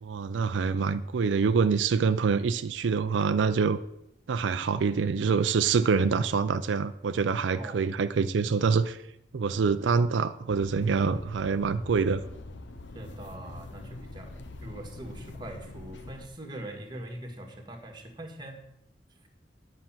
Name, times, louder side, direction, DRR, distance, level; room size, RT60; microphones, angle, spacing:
voice 1, 0.0-3.8 4.3-9.0 9.3-12.2, right 5 dB, 90° right, 11 dB, 0.4 m, -25 dB
sound 1, 10.5-16.3, left 2 dB, 85° left, 0.9 m, -44 dB
voice 2, 12.9-18.6, right 1 dB, 25° right, 2 dB, 1.7 m, -42 dB
9.8 x 5.8 x 7.4 m, 0.82 s
head